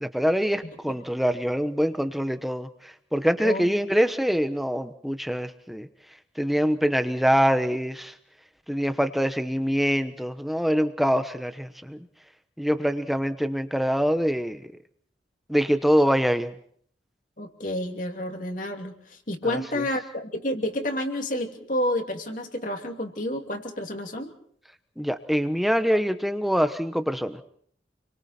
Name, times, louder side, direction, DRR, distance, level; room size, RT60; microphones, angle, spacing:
voice 1, 0.0-5.9 6.4-8.1 8.7-12.0 12.6-14.7 15.5-16.5 19.5-19.8 25.0-27.4, equal, ahead, 9 dB, 1.1 m, -24 dB
voice 2, 17.4-24.3, left 1 dB, 45° left, 4 dB, 2.8 m, -30 dB
29.0 x 23.0 x 4.4 m, 0.62 s
head